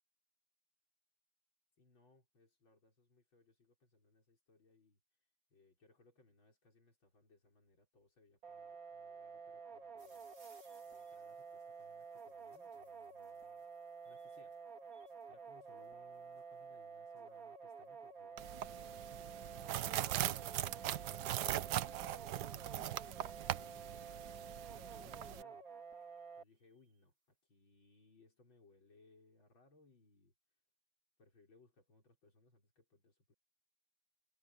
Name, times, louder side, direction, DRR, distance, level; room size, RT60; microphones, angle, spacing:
voice 1, 1.8-5.0 5.5-10.3 10.9-13.6 14.0-14.6 15.3-20.3 20.9-21.7 22.2-24.3 24.8-25.6 26.4-30.3 31.2-33.3, left 3 dB, 85° left, 6.5 m, -68 dB
sound 1, 8.4-26.4, right 5 dB, 45° right, 3.2 m, -51 dB
sound 2, 10.0-23.2 24.0-24.4 25.0-25.1 25.3-25.4 25.7-27.1, right 3 dB, 85° right, 6.0 m, -74 dB
sound 3, 18.4-25.4, right 13 dB, 70° right, 1.2 m, -40 dB
omnidirectional pair, 2.1 m